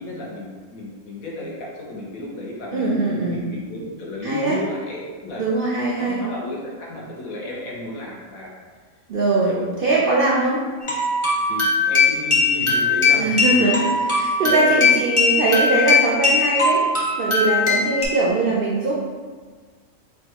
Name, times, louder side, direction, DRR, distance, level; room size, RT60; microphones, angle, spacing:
voice 1, 0.0-3.0 3.2-5.4 5.9-8.5 9.5-9.8 11.5-13.7 14.2-14.8, left 1 dB, 80° left, -3 dB, 1.3 m, -33 dB
voice 2, 2.7-3.5 4.2-4.6 5.4-6.2 9.1-9.5 9.8-10.6 13.2-13.8 14.1-16.9 17.2-18.9, right 3 dB, 65° right, -5 dB, 0.5 m, -21 dB
sound 1, 10.8-18.1, left 3 dB, 25° left, 0.7 m, -19 dB
5.6 x 2.3 x 2.9 m, 1.5 s
omnidirectional pair, 1.5 m